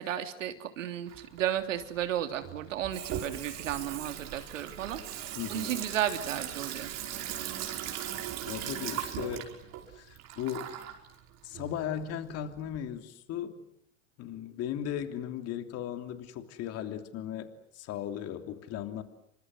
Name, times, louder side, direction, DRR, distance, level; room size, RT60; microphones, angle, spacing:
voice 1, 0.0-6.9, right 11 dB, 80° right, 7 dB, 3.2 m, -34 dB
Water tap faucet / Sink (filling or washing), 1.1-12.8, right 11 dB, 45° right, 5.3 m, -39 dB
voice 2, 5.4-5.7 8.5-9.5 9.9-10.7 11.4-13.6 14.2-19.0, left 10 dB, 40° left, 8 dB, 3.1 m, -37 dB
29.0 x 25.0 x 8.0 m, 0.71 s
hypercardioid pair, 120°, 38 cm